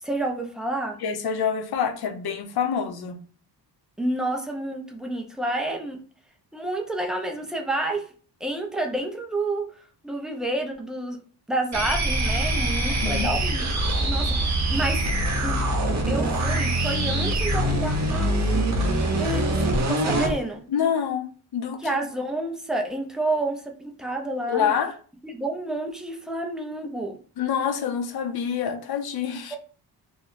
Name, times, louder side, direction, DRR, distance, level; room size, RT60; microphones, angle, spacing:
voice 1, 0.0-1.0 4.0-6.0 6.5-8.0 8.4-9.7 10.0-11.2 11.5-13.7 14.0-15.0 15.4-15.6 16.1-20.6 21.8-24.7 25.2-27.2 29.5-29.6, right 1 dB, ahead, 2 dB, 0.3 m, -29 dB
voice 2, 1.0-3.2 12.9-13.3 20.7-22.0 24.5-25.0 27.4-29.6, left 7 dB, 65° left, 6 dB, 0.6 m, -27 dB
sound 1, 11.7-20.4, right 1 dB, 40° right, 0.7 m, -24 dB
3.0 x 2.1 x 3.8 m, 0.40 s
wide cardioid pair, 160°, 41 cm